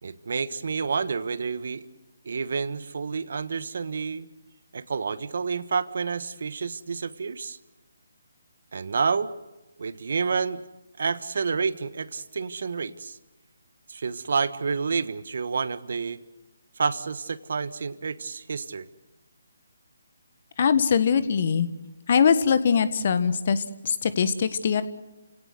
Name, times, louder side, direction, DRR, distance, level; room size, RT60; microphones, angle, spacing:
voice 1, 0.0-1.9 2.2-4.3 4.7-7.6 8.7-9.3 9.8-10.6 11.0-13.2 13.9-16.2 16.8-18.9, right 5 dB, 60° right, 15 dB, 1.3 m, -29 dB
voice 2, 20.6-21.7 22.1-24.8, left 6 dB, 45° left, 13 dB, 1.5 m, -22 dB
29.5 x 17.5 x 8.0 m, 1.1 s
figure-of-eight pair, 150°, 0 cm